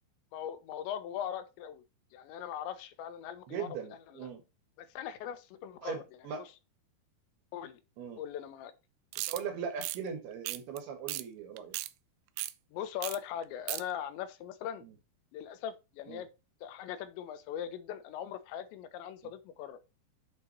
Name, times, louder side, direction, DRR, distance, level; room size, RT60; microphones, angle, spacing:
voice 1, 0.3-1.8 2.1-3.7 4.1-4.3 4.8-6.0 7.5-7.8 8.2-8.7 12.7-14.8 15.3-16.3 16.6-19.8, left 9 dB, 80° left, 3.1 m, -40 dB
voice 2, 3.5-4.4 5.8-6.5 8.0-8.2 9.3-11.8 14.8-15.0 16.1-16.2, right 7 dB, 65° right, 3.3 m, -39 dB
sound 1, 9.1-9.4 9.8-10.0 10.5-10.8 11.1-11.2 11.6-11.9 12.4-12.5 13.0-13.2 13.4-13.8, right 17 dB, 85° right, 2.9 m, -36 dB
7.8 x 4.6 x 4.4 m
omnidirectional pair, 5.2 m